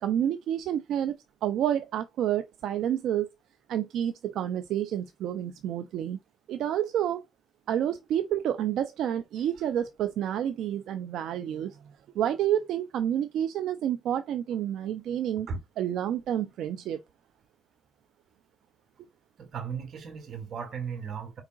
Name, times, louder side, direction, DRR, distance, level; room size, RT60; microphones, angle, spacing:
voice 1, 0.0-3.3 3.7-6.2 6.5-7.2 7.7-11.8 12.1-15.5 15.8-17.0, right 10 dB, 80° right, 0.4 m, -29 dB
voice 2, 19.4-21.4, right 6 dB, 60° right, 1.4 m, -36 dB
4.8 x 3.5 x 2.4 m
cardioid pair, 90°, 0 cm